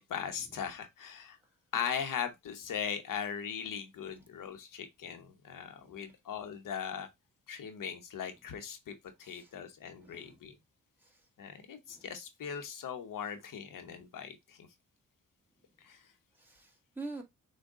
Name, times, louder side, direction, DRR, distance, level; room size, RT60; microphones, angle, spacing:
voice 1, 0.0-1.4 1.7-7.1 7.5-10.6 11.4-14.7 15.8-16.0, left 7 dB, 75° left, 0.9 m, -39 dB
voice 2, 5.8-6.1 9.2-9.5 9.9-10.4 11.0-11.2 11.9-12.1 16.3-17.2, right 3 dB, 5° right, 1.3 m, -46 dB
6.4 x 2.3 x 3.5 m
cardioid pair, 90°, 33 cm